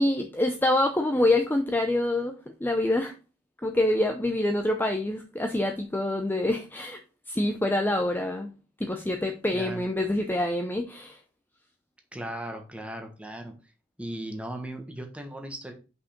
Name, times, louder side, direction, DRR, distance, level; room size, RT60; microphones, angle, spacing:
voice 1, 0.0-3.1 3.6-7.0 7.3-8.5 8.8-11.2, left 1 dB, 10° left, 0.6 m, -26 dB
voice 2, 9.5-9.8 12.1-13.5 14.0-15.7, right 1 dB, 5° right, 1.4 m, -37 dB
5.5 x 5.4 x 5.1 m
head